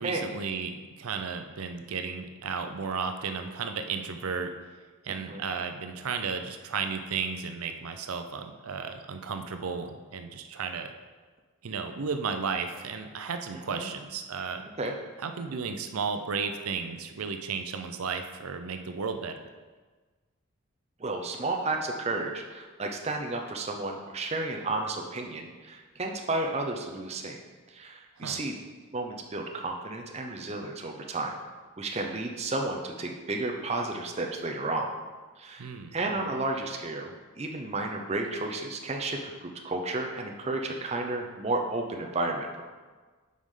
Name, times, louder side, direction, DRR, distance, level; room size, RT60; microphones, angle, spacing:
voice 1, 0.0-4.5 5.0-10.9 11.6-14.6 15.2-19.3 28.2-28.4 35.6-35.9, right 5 dB, 80° right, 6 dB, 0.6 m, -34 dB
voice 2, 5.1-5.4 13.7-13.9 14.8-14.9 21.0-27.4 27.7-28.6 28.9-31.3 31.8-34.9 35.4-42.6, right 2 dB, 30° right, 2 dB, 0.6 m, -32 dB
9.3 x 4.9 x 3.8 m, 1.4 s
head